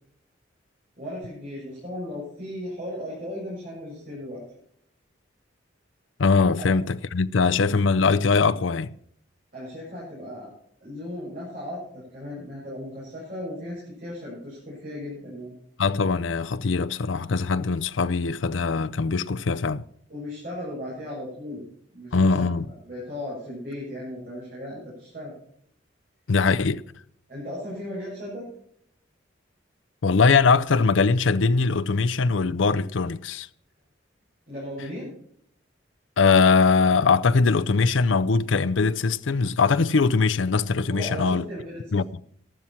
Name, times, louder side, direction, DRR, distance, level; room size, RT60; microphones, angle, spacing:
voice 1, 1.0-4.4 9.5-10.5 10.8-15.5 20.1-21.6 21.9-22.5 22.8-25.3 27.3-28.4 34.5-35.1 40.9-42.0, left 1 dB, 45° right, 7.8 m, -36 dB
voice 2, 6.2-8.9 15.8-19.8 22.1-22.7 26.3-26.8 30.0-33.5 36.2-41.4 41.9-42.0, left 4 dB, 80° left, 0.6 m, -21 dB
14.5 x 12.0 x 4.4 m
head